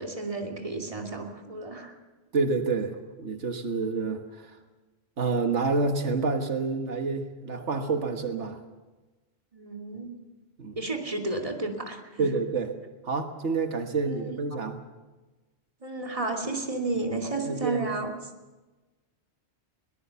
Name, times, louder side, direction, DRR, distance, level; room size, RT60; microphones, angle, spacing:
voice 1, 0.0-1.9 9.5-10.1 10.8-12.3 14.0-14.4 15.8-18.1, right 2 dB, 30° right, 2 dB, 2.6 m, -32 dB
voice 2, 2.3-4.2 5.2-8.6 10.6-10.8 12.2-12.7 13.0-14.8 17.5-17.9, right 4 dB, 85° right, 5 dB, 1.7 m, -28 dB
22.0 x 19.0 x 7.0 m, 1.2 s
omnidirectional pair, 1.2 m